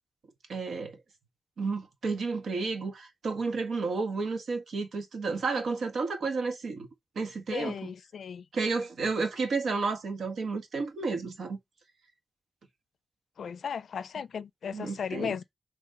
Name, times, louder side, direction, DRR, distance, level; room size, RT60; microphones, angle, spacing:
voice 1, 0.5-1.0 1.6-6.9 7.1-7.9 8.5-11.6 14.7-15.3, right 4 dB, 85° right, 1.5 m, -31 dB
voice 2, 7.5-8.4 13.4-15.4, left 7 dB, 85° left, 0.4 m, -36 dB
6.6 x 3.4 x 5.0 m
wide cardioid pair, 170°, 0 cm